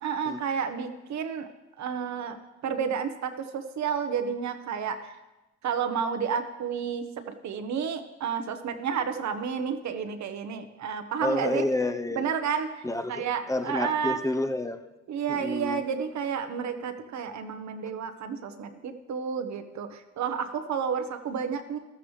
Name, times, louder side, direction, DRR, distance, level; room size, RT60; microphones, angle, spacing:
voice 1, 0.0-1.5 1.8-2.4 2.6-5.2 5.6-11.7 12.2-14.2 15.1-21.8, right 7 dB, 65° right, 8 dB, 1.2 m, -31 dB
voice 2, 11.2-12.3 12.8-14.8 15.3-15.8, left 2 dB, 10° left, 8 dB, 0.8 m, -29 dB
13.5 x 13.0 x 3.3 m, 1.1 s
cardioid pair, 90°, 30 cm